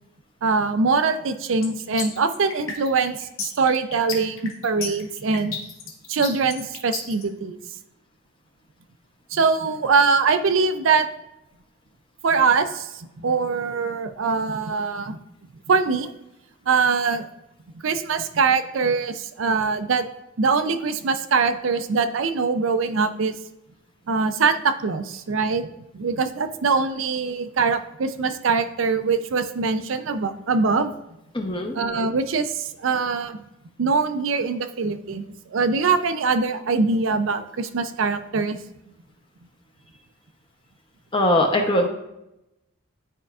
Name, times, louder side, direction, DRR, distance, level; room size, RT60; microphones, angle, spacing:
voice 1, 0.4-5.6 6.1-7.6 9.3-11.1 12.2-15.2 15.7-16.1 16.7-17.2 17.8-20.1 20.4-23.3 24.1-25.7 25.9-30.9 31.8-33.4 33.8-35.3 35.5-38.6, right 4 dB, 75° right, 9 dB, 0.5 m, -23 dB
sound 1, 1.6-7.2, left 5 dB, 85° left, 1.0 m, -32 dB
voice 2, 31.3-31.8 41.1-41.9, left 1 dB, 25° left, 3 dB, 0.7 m, -21 dB
10.0 x 4.4 x 2.4 m, 0.88 s
head